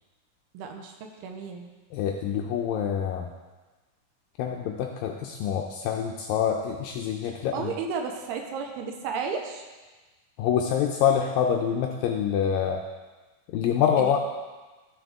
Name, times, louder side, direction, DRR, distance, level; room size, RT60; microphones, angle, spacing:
voice 1, 0.5-1.7 7.2-9.7 14.0-14.2, right 5 dB, 90° right, 3 dB, 2.8 m, -33 dB
voice 2, 1.9-3.3 4.4-7.7 10.4-12.8 13.5-14.2, left 8 dB, 80° left, 2 dB, 2.0 m, -26 dB
13.0 x 6.2 x 3.6 m, 1.2 s
omnidirectional pair, 4.6 m